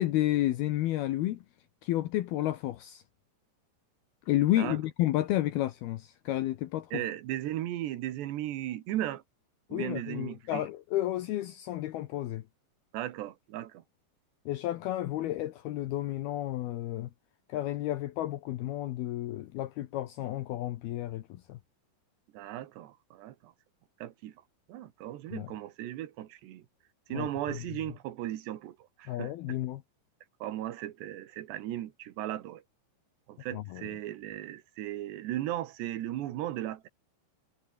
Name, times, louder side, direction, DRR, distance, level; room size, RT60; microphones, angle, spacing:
voice 1, 0.0-1.4 1.8-3.0 4.3-7.0 9.7-12.4 14.5-17.1 17.5-21.6 25.3-25.5 27.1-27.6 29.1-29.8 33.5-33.9, left 14 dB, 70° left, 2.6 m, -31 dB
voice 2, 6.9-9.2 9.7-10.7 12.9-13.8 22.3-23.5 24.0-24.3 24.7-26.6 27.1-29.6 30.4-32.6 33.3-36.9, right 13 dB, 75° right, 3.6 m, -36 dB
omnidirectional pair, 5.1 m